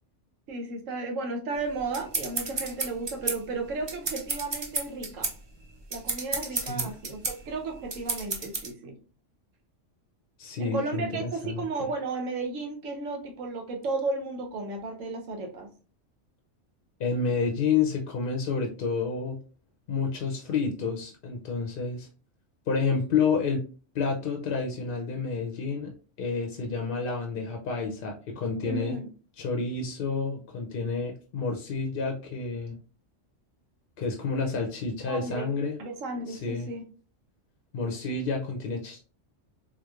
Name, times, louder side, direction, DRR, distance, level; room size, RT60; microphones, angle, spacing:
voice 1, 0.5-5.3 5.9-9.0 10.6-15.7 28.6-29.1 35.1-35.5 35.8-36.9, right 3 dB, 85° right, 3 dB, 1.1 m, -34 dB
sound 1, 1.6-8.7, right 3 dB, 45° right, 0.3 m, -32 dB
voice 2, 6.5-6.9 10.4-11.9 17.0-19.4 19.9-22.1 22.7-23.6 23.9-29.0 29.4-32.8 34.0-35.8 36.3-36.7 37.7-39.0, left 5 dB, 60° left, 2 dB, 0.7 m, -29 dB
3.6 x 3.2 x 2.4 m, 0.38 s
omnidirectional pair, 1.3 m